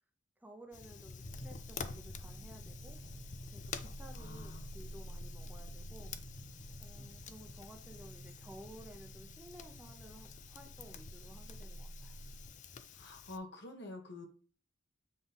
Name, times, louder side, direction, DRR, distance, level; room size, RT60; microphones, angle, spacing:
voice 1, 0.4-3.0 3.5-6.1 6.8-12.2, right 1 dB, 10° right, 4 dB, 0.8 m, -55 dB
Fire, 0.7-13.4, left 5 dB, 40° left, 0.5 m, -49 dB
sound 1, 1.2-12.5, right 1 dB, 45° right, 0.5 m, -50 dB
voice 2, 4.2-4.7 12.9-14.3, left 2 dB, 60° left, 3 dB, 1.5 m, -47 dB
7.3 x 3.9 x 3.4 m, 0.39 s
head